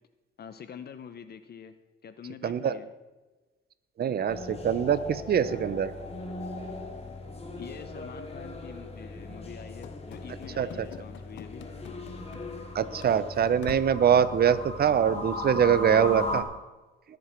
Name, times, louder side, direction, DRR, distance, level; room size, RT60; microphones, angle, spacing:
voice 1, 0.4-1.7 2.0-2.9 7.6-11.6, left 7 dB, 55° left, 11 dB, 1.0 m, -45 dB
voice 2, 2.4-2.7 4.0-5.9 10.6-10.9 12.7-16.4, right 8 dB, 50° right, 14 dB, 0.9 m, -24 dB
sound 1, 4.3-16.4, left 2 dB, 30° left, 2.4 m, -38 dB
Run / Slam, 9.8-12.7 13.0-13.1 13.6-14.1, left 12 dB, 70° left, 0.6 m, -45 dB
20.0 x 8.0 x 4.6 m, 1.2 s
cardioid pair, 90°, 20 cm